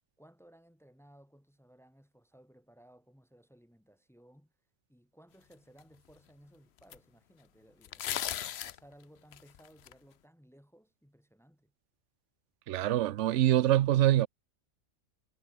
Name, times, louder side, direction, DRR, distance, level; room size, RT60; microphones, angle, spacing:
voice 1, 0.2-4.5 4.9-11.7, equal, ahead, 4.9 m, -60 dB
sound 1, 5.8-5.9 6.9-7.0 7.8-8.8 9.3-9.9, left 11 dB, 60° left, 0.8 m, -36 dB
voice 2, 12.7-14.3, right 13 dB, 70° right, 0.9 m, -25 dB
omnidirectional pair, 1.4 m